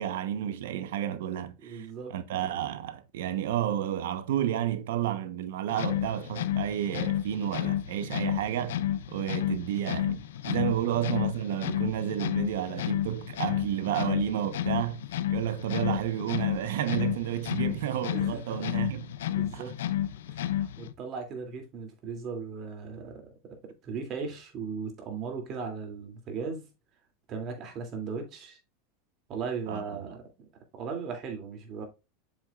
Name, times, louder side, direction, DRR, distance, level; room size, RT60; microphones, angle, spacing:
voice 1, 0.0-8.8 9.1-15.0 15.3-19.1 19.5-19.7 29.7-29.8, right 11 dB, 80° right, 0.9 m, -31 dB
voice 2, 1.6-2.1 18.1-18.6 19.4-19.7 20.3-23.2 23.6-26.6 27.3-28.6 29.3-30.2 30.7-31.9, right 5 dB, 40° right, 2.6 m, -37 dB
sound 1, 5.7-20.9, left 12 dB, 90° left, 0.6 m, -31 dB
7.4 x 7.1 x 2.4 m
supercardioid pair, 125°, 0 cm